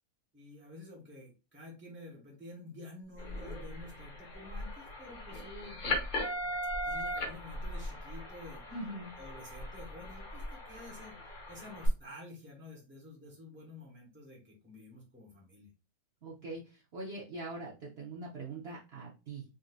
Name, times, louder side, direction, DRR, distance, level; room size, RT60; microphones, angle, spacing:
voice 1, 0.3-5.8 6.8-8.6 9.2-11.2 11.5-15.7, left 2 dB, 10° right, -1 dB, 1.0 m, -50 dB
sound 1, 3.2-11.9, left 1 dB, 40° left, 0.8 m, -39 dB
voice 2, 8.7-9.1 16.2-19.4, right 2 dB, 55° right, -4 dB, 0.9 m, -42 dB
3.9 x 2.6 x 2.4 m, 0.31 s
omnidirectional pair, 1.5 m